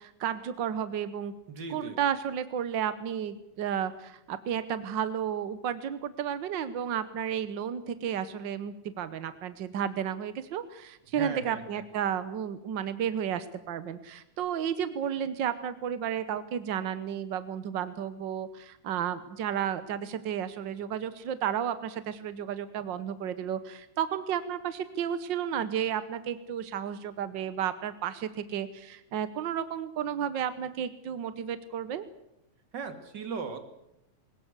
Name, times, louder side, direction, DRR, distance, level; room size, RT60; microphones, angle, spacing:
voice 1, 0.0-1.3 1.7-32.1, right 9 dB, 70° right, 13 dB, 1.1 m, -32 dB
voice 2, 1.5-2.0 11.1-11.8 32.7-33.6, right 5 dB, 40° right, 8 dB, 2.6 m, -38 dB
22.0 x 19.5 x 8.2 m, 0.82 s
omnidirectional pair, 3.3 m